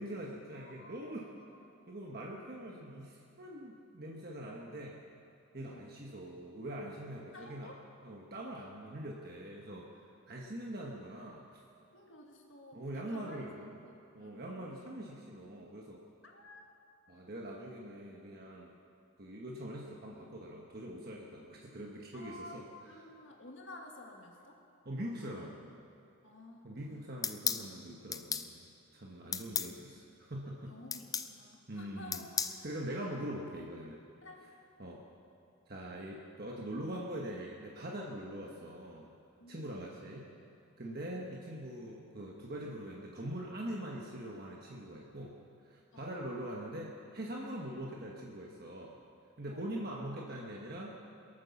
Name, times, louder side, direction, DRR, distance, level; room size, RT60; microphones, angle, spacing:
voice 1, 0.0-1.3 1.9-5.0 5.5-7.7 8.0-11.4 12.7-13.8 14.1-16.0 17.1-18.8 19.2-22.6 22.9-23.1 24.8-25.6 26.6-30.7 31.7-32.2 32.6-34.0 34.8-35.0 35.7-39.1 39.5-40.3 40.8-45.3 45.6-49.0 49.4-51.0, right 1 dB, 45° right, -2 dB, 1.3 m, -43 dB
voice 2, 0.5-1.9 5.6-5.9 7.3-7.8 11.9-13.4 13.8-14.7 16.2-16.7 22.1-24.6 26.2-26.9 29.2-29.5 30.7-32.3 34.2-34.4 39.4-39.8 40.8-41.1 45.9-46.2 49.4-49.7, left 1 dB, 65° left, 1 dB, 2.0 m, -53 dB
sound 1, 27.2-27.7 28.1-28.5 29.3-29.7 30.9-31.3 32.1-32.6, left 7 dB, 15° left, 0.4 m, -34 dB
23.0 x 9.0 x 7.0 m, 2.6 s
head